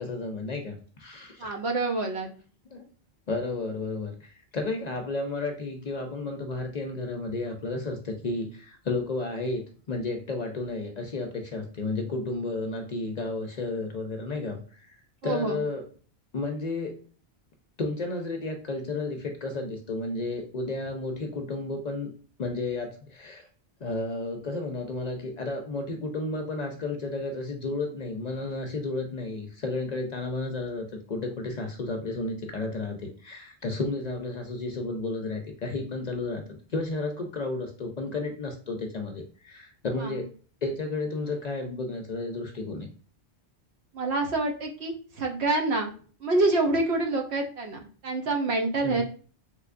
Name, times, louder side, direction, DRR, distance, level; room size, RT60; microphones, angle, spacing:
voice 1, 0.0-1.5 2.7-2.9 3.3-15.0 15.2-15.9 16.3-17.1 17.8-22.1 22.4-23.5 23.8-36.4 36.7-40.3 40.6-42.9 48.8-49.0, left 2 dB, 55° left, 4 dB, 0.5 m, -32 dB
voice 2, 1.4-2.3 15.2-15.6 40.0-40.2 43.9-45.9 46.2-49.0, right 2 dB, 80° right, 2 dB, 1.0 m, -27 dB
3.4 x 3.1 x 2.4 m, 0.42 s
omnidirectional pair, 1.1 m